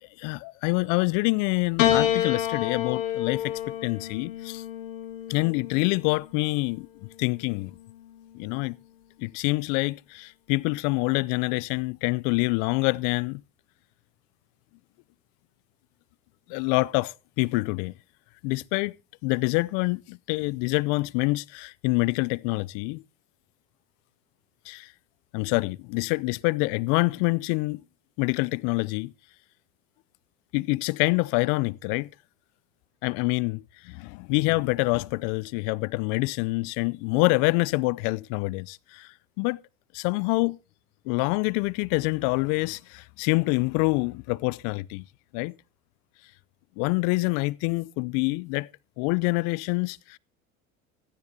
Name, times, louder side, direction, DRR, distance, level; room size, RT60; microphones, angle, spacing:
voice 1, 0.2-3.5 3.8-4.6 5.3-6.9 7.2-7.7 8.3-8.8 9.2-13.4 16.5-17.9 18.4-19.0 19.2-23.0 24.7-24.9 25.3-27.8 28.2-29.1 30.5-32.1 33.0-39.1 39.4-39.6 39.9-40.6 41.1-45.0 45.3-45.5 46.8-48.7 49.0-50.2, left 25 dB, 55° left, 0.5 m, -26 dB
Piano, 1.8-6.3 7.3-8.1, left 11 dB, 70° left, 2.2 m, -28 dB
16.5 x 14.0 x 2.7 m
hypercardioid pair, 85°, 40 cm